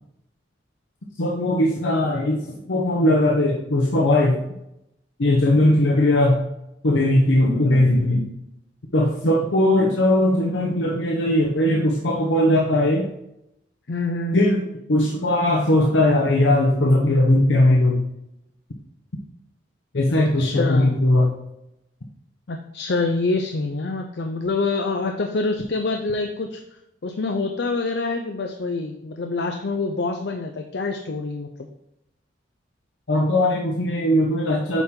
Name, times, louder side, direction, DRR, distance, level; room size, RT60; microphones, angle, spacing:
voice 1, 1.2-4.6 5.2-6.4 6.8-8.3 8.9-13.1 14.3-18.0 19.9-21.3 33.1-34.8, left 1 dB, 80° left, -1 dB, 0.9 m, -19 dB
voice 2, 13.9-14.6 20.4-21.0 22.5-26.6 27.0-31.5, left 3 dB, 60° left, 4 dB, 0.5 m, -26 dB
8.1 x 4.4 x 3.7 m, 0.84 s
head